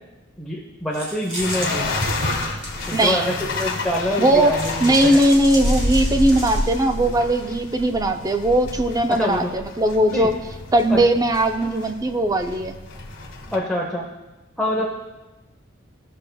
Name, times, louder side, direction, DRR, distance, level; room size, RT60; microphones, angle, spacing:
voice 1, 0.4-1.9 2.9-5.2 9.1-9.5 10.1-10.3 10.9-11.0 13.5-14.1 14.6-14.8, left 1 dB, ahead, -4 dB, 0.8 m, -25 dB
sound 1, 0.9-4.0 4.6-6.9, right 1 dB, 35° right, 2.1 m, -34 dB
sound 2, 1.4-13.6, left 2 dB, 60° left, 1.2 m, -29 dB
voice 2, 2.9-3.3 4.2-4.5 4.8-10.3 10.7-12.8, right 1 dB, 20° right, 6 dB, 0.4 m, -19 dB
17.0 x 6.4 x 2.3 m, 1.1 s
head